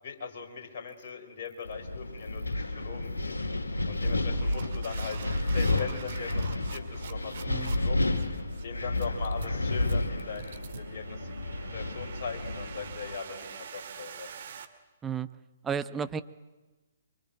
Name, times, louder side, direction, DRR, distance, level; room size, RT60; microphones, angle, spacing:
voice 1, 0.0-3.5 3.9-5.2 5.5-8.0 8.6-11.4 11.7-14.3, left 5 dB, 45° left, 3 dB, 4.4 m, -40 dB
sound 1, 0.9-1.1 1.4-1.7 2.2-2.5 3.0-3.3 3.9-14.6, right 7 dB, 55° right, 2.1 m, -46 dB
Wind, 1.6-13.2, left 2 dB, 75° left, 2.5 m, -31 dB
voice 2, 7.5-7.8 15.0-15.3 15.6-16.2, right 7 dB, 15° right, 11 dB, 0.9 m, -32 dB
24.0 x 23.5 x 9.0 m, 1.2 s
figure-of-eight pair, 125°, 0 cm